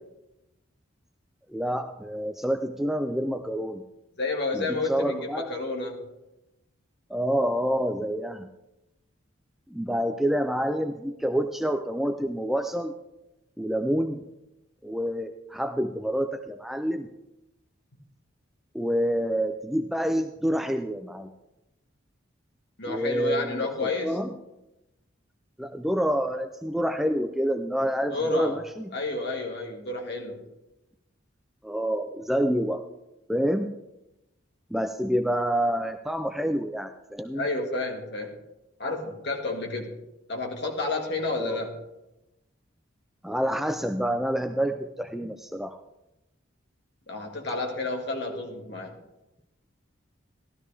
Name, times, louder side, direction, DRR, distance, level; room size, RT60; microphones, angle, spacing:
voice 1, 1.5-3.8 4.5-5.5 7.1-8.5 9.7-12.9 13.6-14.2 14.8-17.1 18.7-21.3 22.9-24.3 25.6-28.9 31.6-32.8 33.3-33.7 34.7-37.4 41.4-41.6 43.2-45.8, equal, ahead, 7 dB, 0.3 m, -27 dB
voice 2, 4.2-6.0 22.8-24.2 28.1-28.6 28.9-30.4 37.3-38.3 38.8-40.0 40.3-41.7 47.1-49.0, left 3 dB, 55° left, 2 dB, 1.8 m, -30 dB
13.0 x 12.5 x 3.4 m, 0.93 s
head